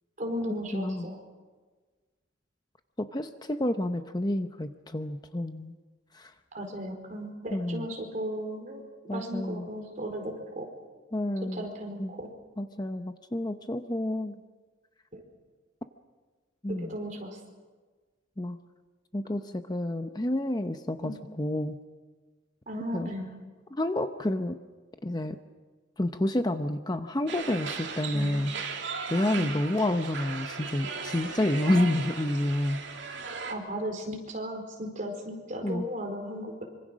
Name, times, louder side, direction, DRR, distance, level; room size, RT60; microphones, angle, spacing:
voice 1, 0.2-1.2 6.5-8.8 9.1-10.7 11.4-12.3 15.1-15.2 16.7-17.4 21.0-21.2 22.7-23.3 28.1-28.3 29.3-29.5 31.7-31.9 33.5-36.6, equal, 40° right, 3 dB, 4.5 m, -36 dB
voice 2, 0.7-1.1 3.0-5.7 6.1-6.3 7.5-7.9 9.1-9.7 11.1-11.7 12.0-12.1 12.6-14.4 16.6-17.0 18.4-18.6 19.1-21.1 21.4-21.8 22.9-23.1 23.7-24.6 25.0-25.4 26.0-28.5 29.1-32.8 35.6-35.9, left 1 dB, 20° left, 8 dB, 0.7 m, -29 dB
sound 1, 27.3-33.5, right 5 dB, 65° right, 2.8 m, -37 dB
25.5 x 25.0 x 6.3 m, 1.4 s
head